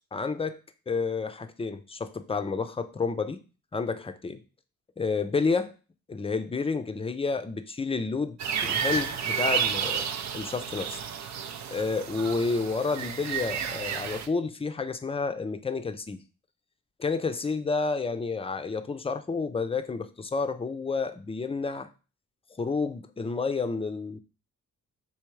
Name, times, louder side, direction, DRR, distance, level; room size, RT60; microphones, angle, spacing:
voice 1, 0.1-0.6 0.9-3.4 3.7-4.4 5.0-5.7 6.1-10.1 10.3-11.0 11.7-16.2 17.0-21.9 22.5-24.2, left 4 dB, 15° left, 0.4 m, -30 dB
sound 1, 8.4-14.3, right 7 dB, 55° right, 0.5 m, -31 dB
3.4 x 2.8 x 3.1 m
supercardioid pair, 45°, 35 cm